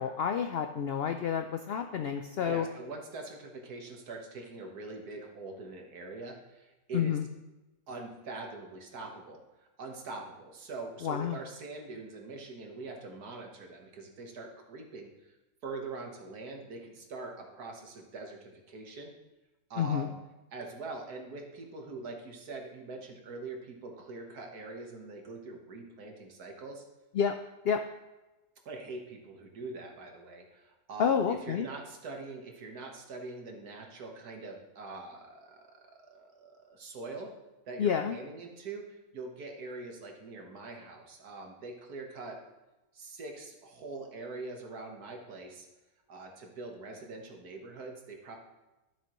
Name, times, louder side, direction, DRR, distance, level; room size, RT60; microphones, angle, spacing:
voice 1, 0.0-2.7 6.9-7.2 11.0-11.4 19.8-20.1 27.1-27.4 27.6-27.8 31.0-31.7 37.8-38.2, left 7 dB, 75° left, 6 dB, 0.5 m, -29 dB
voice 2, 2.4-7.2 7.9-9.4 9.8-15.4 15.6-19.1 19.7-20.1 20.5-26.8 28.7-37.3 37.7-42.4 42.9-45.7 46.1-48.4, right 3 dB, 90° right, 2 dB, 1.8 m, -43 dB
12.5 x 7.3 x 3.0 m, 1.1 s
omnidirectional pair, 1.6 m